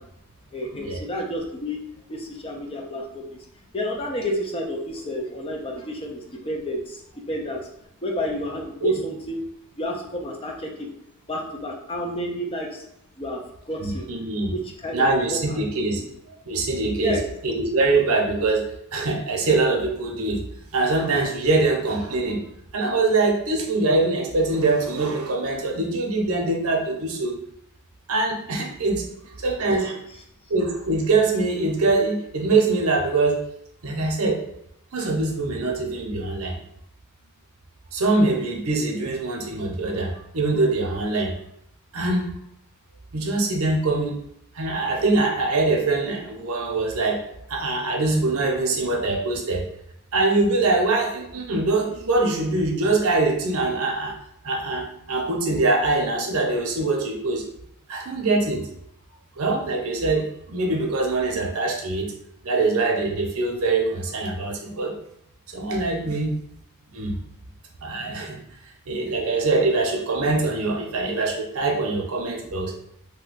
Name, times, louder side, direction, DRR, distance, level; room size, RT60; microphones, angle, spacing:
voice 1, 0.5-1.8 2.1-3.4 3.7-7.0 7.3-7.6 8.0-9.4 9.8-10.9 11.3-12.8 13.2-13.4 13.7-14.1 14.5-15.6 17.0-17.2, equal, 25° left, 0 dB, 0.5 m, -30 dB
voice 2, 13.8-14.5 14.9-16.0 16.3-17.2 17.4-18.6 18.9-20.4 20.7-22.4 22.7-27.4 28.1-29.0 29.4-30.0 30.5-33.4 33.8-34.4 34.9-36.6 37.9-41.3 41.9-42.4 43.1-44.2 44.5-47.2 47.5-49.7 50.1-54.2 54.4-57.4 57.9-58.7 59.4-62.1 62.4-64.9 65.5-66.3 66.9-67.2 67.8-68.4 68.9-72.7, right 3 dB, 75° right, 1 dB, 0.7 m, -23 dB
2.7 x 2.2 x 4.0 m, 0.76 s
head